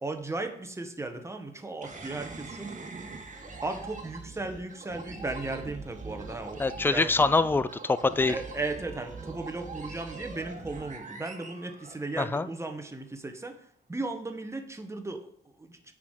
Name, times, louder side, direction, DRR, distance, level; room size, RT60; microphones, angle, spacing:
voice 1, 0.0-2.7 3.6-7.3 8.3-13.6 13.9-15.3 15.6-15.7, right 2 dB, 15° right, 6 dB, 1.2 m, -36 dB
sound 1, 1.8-12.4, right 3 dB, 40° right, 1.5 m, -43 dB
voice 2, 6.6-8.4 12.2-12.5, left 3 dB, 10° left, 14 dB, 0.4 m, -24 dB
7.1 x 4.9 x 6.4 m, 0.68 s
cardioid pair, 90°, 20 cm